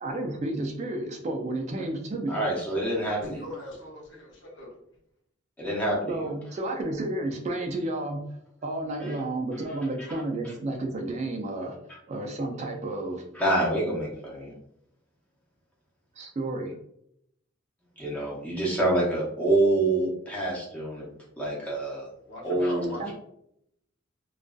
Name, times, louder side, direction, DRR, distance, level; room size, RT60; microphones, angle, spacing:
voice 1, 0.0-2.4 6.1-8.3 8.6-11.8 12.1-13.2 16.2-16.7 23.0-23.1, right 2 dB, 35° right, 2 dB, 0.3 m, -31 dB
voice 2, 2.3-3.4 5.6-6.1 13.3-14.5 18.0-21.1 21.4-22.1 22.4-22.9, right 1 dB, 5° left, -5 dB, 0.7 m, -26 dB
voice 3, 3.2-4.7 22.3-23.1, left 1 dB, 60° left, -2 dB, 0.7 m, -41 dB
2.5 x 2.3 x 2.2 m, 0.74 s
head